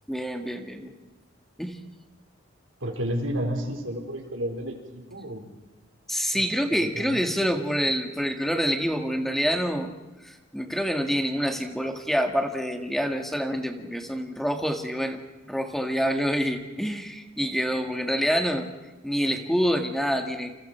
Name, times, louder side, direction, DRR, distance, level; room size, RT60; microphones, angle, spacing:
voice 1, 0.1-0.9 1.6-1.8 6.1-9.9 10.2-15.2 15.5-18.7 19.0-20.5, equal, ahead, 4 dB, 1.8 m, -27 dB
voice 2, 2.8-5.5 6.8-7.2, equal, 90° right, 2 dB, 4.6 m, -31 dB
28.5 x 27.5 x 4.5 m, 1.1 s
head